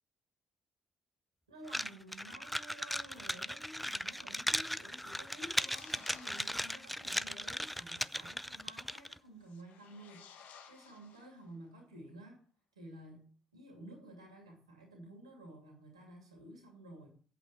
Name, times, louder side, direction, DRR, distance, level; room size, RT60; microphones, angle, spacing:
voice 1, 1.5-12.4 12.7-17.1, right 1 dB, 80° right, 2 dB, 2.4 m, -52 dB
sound 1, 1.7-9.2, equal, ahead, 0.4 m, -37 dB
sound 2, 5.0-7.0 9.4-11.7, left 7 dB, 60° left, 1.3 m, -58 dB
8.3 x 8.0 x 7.2 m, 0.42 s
figure-of-eight pair, 45°, 3 cm